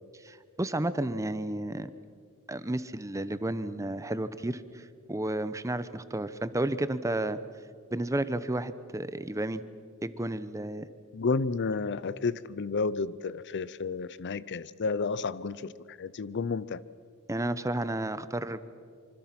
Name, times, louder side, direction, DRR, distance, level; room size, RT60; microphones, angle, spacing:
voice 1, 0.2-1.9 2.5-7.4 7.9-9.6 10.0-10.9 17.3-18.6, right 1 dB, 15° right, 13 dB, 0.7 m, -32 dB
voice 2, 11.1-16.8, left 4 dB, 55° left, 18 dB, 0.5 m, -31 dB
25.5 x 25.0 x 6.0 m, 2.2 s
head